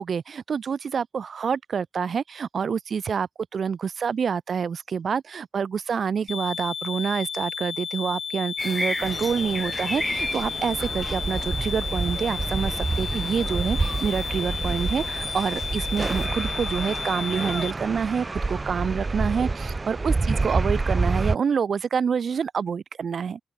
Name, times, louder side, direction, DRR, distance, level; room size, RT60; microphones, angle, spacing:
voice 1, 0.0-23.4, right 6 dB, 55° right, 1.3 m, -27 dB
sound 1, 6.3-17.7, left 7 dB, 60° left, 0.5 m, -33 dB
sound 2, 8.6-16.3, left 1 dB, 10° left, 1.0 m, -36 dB
sound 3, 9.0-21.4, right 3 dB, 25° right, 1.2 m, -28 dB
open air
cardioid pair, 105°, 0 cm